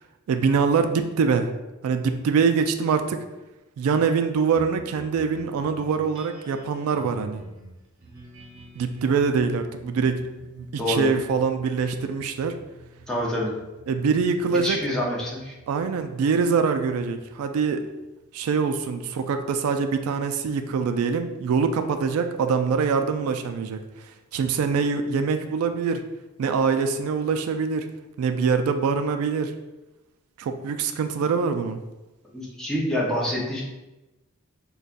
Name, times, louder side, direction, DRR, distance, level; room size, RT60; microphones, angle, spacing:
voice 1, 0.3-1.5 1.8-3.2 3.8-7.4 8.8-10.2 10.5-12.5 13.9-14.8 15.7-17.8 18.3-23.8 24.3-26.0 26.4-27.9 28.2-29.5 30.4-31.8, right 5 dB, 85° right, 8 dB, 0.3 m, -24 dB
sound 1, 4.5-19.2, right 2 dB, 65° right, 0.8 m, -49 dB
voice 2, 10.8-11.1 13.1-13.5 14.5-15.5 32.3-33.6, left 1 dB, 5° left, -5 dB, 0.7 m, -27 dB
5.2 x 2.3 x 2.5 m, 1.0 s
head